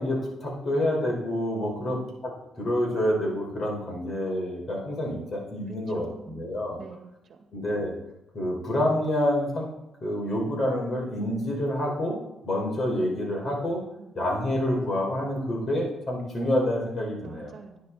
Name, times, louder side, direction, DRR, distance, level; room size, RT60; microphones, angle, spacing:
voice 1, 0.0-6.8 7.5-7.9 8.3-9.7 10.0-13.8 14.1-17.5, left 1 dB, 40° left, -2 dB, 5.0 m, -28 dB
voice 2, 1.7-2.0 5.9-6.4 6.8-7.4 14.0-14.2 17.2-17.9, right 4 dB, 50° right, 4 dB, 2.0 m, -45 dB
10.5 x 10.0 x 4.3 m, 0.92 s
cardioid pair, 90°, 0 cm